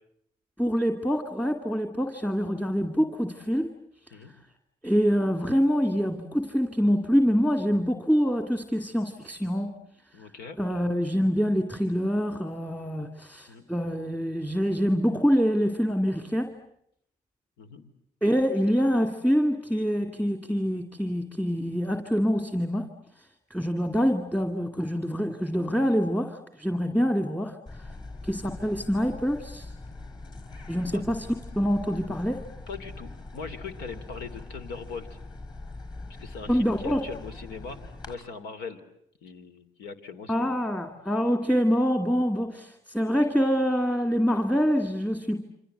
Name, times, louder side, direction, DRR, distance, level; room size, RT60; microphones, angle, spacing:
voice 1, 0.6-3.7 4.8-9.7 10.6-16.6 18.2-22.9 23.5-27.9 28.2-29.7 30.7-32.5 36.5-37.0 40.3-45.5, equal, 10° left, 6 dB, 2.3 m, -25 dB
voice 2, 10.1-10.6 13.5-13.7 17.6-17.9 30.9-31.0 32.7-35.2 36.2-38.8 39.2-40.6, left 5 dB, 85° left, 11 dB, 3.3 m, -40 dB
sound 1, 27.7-38.1, left 2 dB, 25° left, 5.8 m, -42 dB
28.5 x 26.0 x 8.0 m, 0.75 s
cardioid pair, 110°, 17 cm